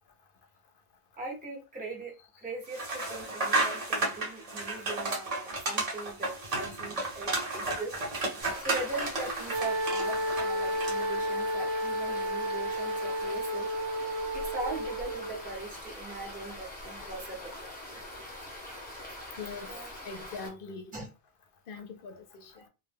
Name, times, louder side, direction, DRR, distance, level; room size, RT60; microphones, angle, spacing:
voice 1, 1.2-8.0 8.6-13.7 14.3-17.6 18.7-18.8 19.1-19.2 19.7-19.9 20.9-21.1 22.5-22.6, right 2 dB, 10° right, 0.7 m, -40 dB
sound 1, 2.7-11.2, right 2 dB, 40° right, 0.8 m, -33 dB
sound 2, 8.4-20.5, left 1 dB, 10° left, 0.9 m, -43 dB
Wind instrument woodwind instrument, 9.5-15.5, equal, 75° right, 0.9 m, -32 dB
voice 2, 19.4-19.7 20.1-20.9 21.7-22.5, left 4 dB, 65° left, 0.7 m, -42 dB
2.1 x 2.0 x 3.3 m
omnidirectional pair, 1.0 m